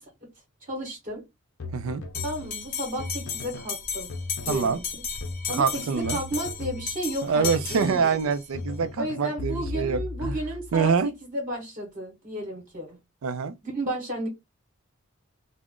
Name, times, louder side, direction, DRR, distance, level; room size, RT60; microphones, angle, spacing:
voice 1, 0.6-1.2 2.2-4.1 4.4-5.0 5.5-8.3 9.0-13.0 13.6-14.3, right 1 dB, 40° right, 1.0 m, -33 dB
sound 1, 1.6-3.8 4.1-4.9 5.2-8.2 8.5-11.0, left 3 dB, 70° left, 0.5 m, -37 dB
Bell, 2.1-8.4, left 6 dB, 40° left, 0.8 m, -35 dB
voice 2, 4.5-4.8 5.5-6.2 7.2-10.3 10.7-11.1 13.2-13.6, right 5 dB, 85° right, 0.4 m, -25 dB
2.4 x 2.0 x 3.6 m
head